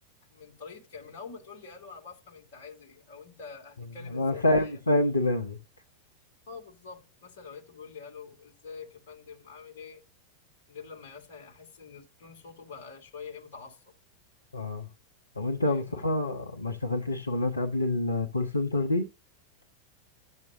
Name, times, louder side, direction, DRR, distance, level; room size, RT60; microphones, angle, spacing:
voice 1, 0.3-4.8 6.5-10.0 10.7-13.9 15.6-16.1, left 5 dB, 55° left, 2.8 m, -46 dB
voice 2, 4.1-5.6 14.5-14.9 15.4-19.1, left 2 dB, 80° left, 0.8 m, -27 dB
12.0 x 7.4 x 2.8 m
figure-of-eight pair, 90°, 0 cm